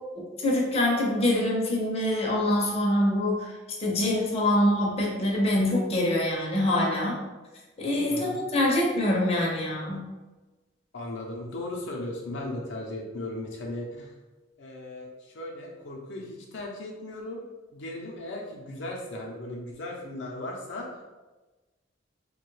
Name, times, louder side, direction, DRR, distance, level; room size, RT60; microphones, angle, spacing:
voice 1, 0.4-3.5 3.8-7.2 7.8-10.0, left 1 dB, 35° left, -3 dB, 0.6 m, -25 dB
voice 2, 8.1-8.4 10.9-14.1 14.6-17.4 17.7-20.9, left 1 dB, 75° left, -2 dB, 0.6 m, -37 dB
3.1 x 2.2 x 3.1 m, 1.2 s
head